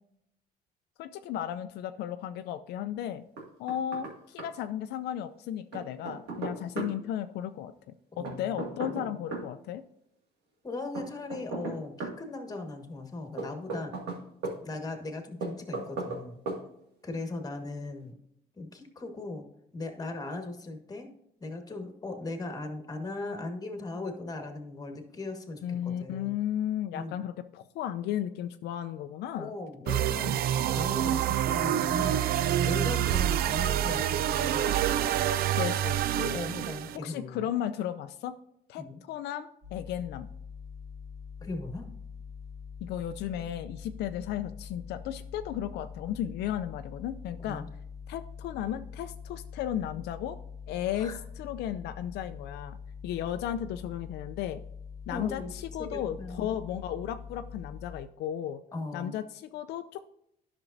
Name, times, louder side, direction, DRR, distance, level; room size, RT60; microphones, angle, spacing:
voice 1, 1.0-3.2 3.6-7.7 8.2-9.8 25.6-29.5 33.0-33.1 35.6-36.4 36.9-38.3 38.7-40.3 42.8-47.6 48.1-50.4 50.7-52.8 53.0-54.6 55.1-58.6 58.9-60.1, left 10 dB, 75° left, 9 dB, 0.5 m, -34 dB
Knock, 3.4-4.1 4.4-4.5 5.7-6.9 8.2-9.5 10.9-12.2 13.4-14.6 15.4-16.2 16.5-16.6, right 3 dB, 80° right, 2.1 m, -36 dB
voice 2, 8.2-8.9 10.6-13.9 14.6-16.4 17.0-18.1 18.6-19.4 19.7-21.1 21.4-26.4 26.9-27.2 29.3-30.4 30.7-32.2 32.6-34.8 35.5-35.6 36.3-37.4 38.8-39.0 41.4-41.9 47.4-47.7 50.9-51.2 55.1-55.5 55.8-56.5 58.7-59.1, left 2 dB, 20° left, 5 dB, 1.5 m, -38 dB
sound 1, 29.9-37.0, right 11 dB, 65° right, 0.5 m, -27 dB
sound 2, 39.6-58.0, left 6 dB, 40° right, 2.0 m, -44 dB
10.5 x 6.1 x 2.6 m, 0.78 s
cardioid pair, 110°, 17 cm